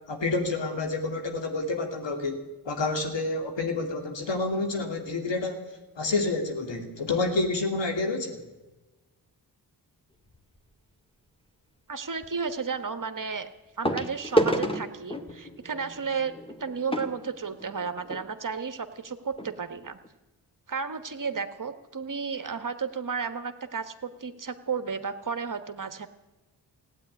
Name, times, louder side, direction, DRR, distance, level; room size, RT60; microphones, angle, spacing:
voice 1, 0.1-5.6 6.0-8.4, left 3 dB, 75° left, 4 dB, 2.7 m, -29 dB
sound 1, 10.3-10.6 12.2-12.3 13.8-18.2 19.0-19.1 19.3-19.5 20.0-20.1, right 1 dB, 10° left, 2.0 m, -30 dB
voice 2, 11.9-13.5 13.8-16.3 16.6-20.0 20.7-26.1, right 5 dB, 45° right, 10 dB, 1.4 m, -33 dB
15.5 x 9.4 x 9.8 m, 1.1 s
cardioid pair, 45°, 44 cm